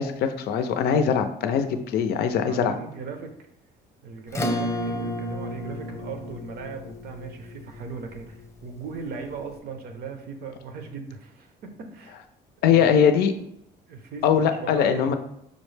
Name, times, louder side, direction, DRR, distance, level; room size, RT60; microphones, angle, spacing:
voice 1, 0.0-2.8 12.6-13.3 14.2-15.2, left 7 dB, 70° left, 8 dB, 0.4 m, -21 dB
voice 2, 2.5-3.3 4.0-12.2 12.6-12.9 13.9-15.1, right 5 dB, 65° right, 5 dB, 0.6 m, -38 dB
Acoustic guitar / Strum, 4.3-9.2, left 1 dB, 15° left, 0.7 m, -32 dB
5.1 x 2.1 x 3.2 m, 0.75 s
cardioid pair, 110°, 17 cm